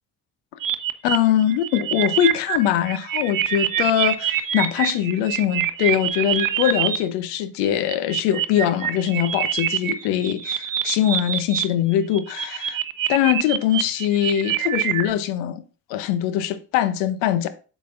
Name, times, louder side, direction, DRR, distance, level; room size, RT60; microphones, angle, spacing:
sound 1, 0.6-7.0 7.7-11.6 11.9-15.1, right 11 dB, 45° right, 0.8 m, -25 dB
voice 1, 1.0-12.8 13.1-15.6 15.9-17.5, left 11 dB, 65° left, 0.8 m, -22 dB
8.2 x 5.9 x 2.5 m
figure-of-eight pair, 40°, 46 cm